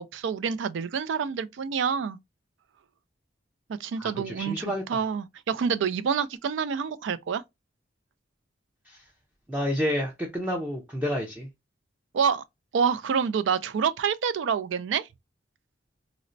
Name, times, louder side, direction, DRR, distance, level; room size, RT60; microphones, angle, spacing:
voice 1, 0.0-2.2 3.8-7.4 12.1-12.4 12.7-15.1, right 6 dB, 75° right, 0.3 m, -27 dB
voice 2, 4.0-4.8 8.9-9.0 9.5-11.5, equal, 10° right, 0.5 m, -29 dB
4.1 x 2.0 x 2.5 m
head